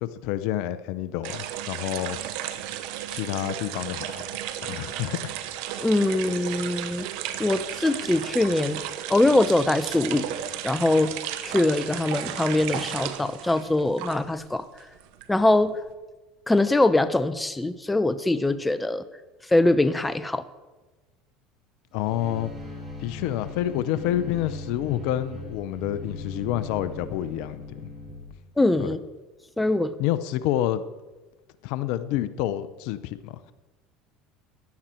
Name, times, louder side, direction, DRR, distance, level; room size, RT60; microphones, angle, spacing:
voice 1, 0.0-2.2 3.1-4.2 4.7-5.3 21.9-22.5 23.0-27.9 28.8-29.0 30.0-30.8 31.6-33.5, left 13 dB, 70° left, 14 dB, 0.7 m, -28 dB
sound 1, 1.2-14.4 14.7-15.9, right 11 dB, 70° right, 1.0 m, -34 dB
voice 2, 5.8-7.1 7.4-8.8 9.1-10.3 10.6-11.2 11.4-14.6 15.3-15.8 16.5-19.0 19.5-20.4 28.6-29.0 29.6-29.9, left 2 dB, 10° left, 13 dB, 0.9 m, -22 dB
sound 2, 21.9-28.3, left 2 dB, 25° right, 4.1 m, -39 dB
15.5 x 11.0 x 4.5 m, 1.2 s
hypercardioid pair, 85°, 0 cm